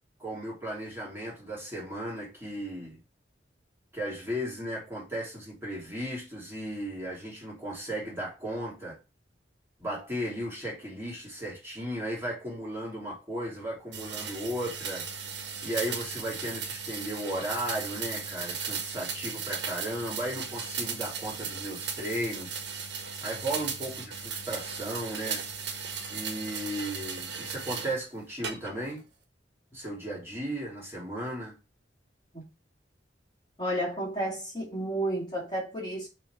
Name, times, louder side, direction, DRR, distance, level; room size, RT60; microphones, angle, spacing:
voice 1, 0.2-3.0 3.9-9.0 9.8-15.1 15.6-22.6 23.2-25.5 26.1-29.0 29.7-31.6, right 1 dB, 15° right, 3.1 m, -35 dB
sound 1, 13.9-28.0 28.4-29.0, right 6 dB, 65° right, 1.3 m, -36 dB
voice 2, 33.6-36.1, right 1 dB, 25° left, 2.5 m, -31 dB
6.7 x 3.5 x 4.7 m
head